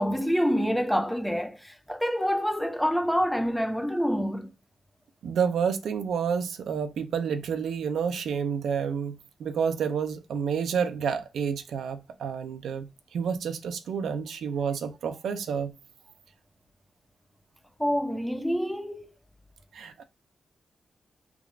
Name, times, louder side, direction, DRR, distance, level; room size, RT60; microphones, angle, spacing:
voice 1, 0.0-4.5 17.8-19.1, equal, ahead, 0.3 m, -27 dB
voice 2, 5.2-15.7 19.7-20.0, right 7 dB, 90° right, 0.4 m, -29 dB
3.5 x 2.4 x 3.1 m
wide cardioid pair, 175°, 0 cm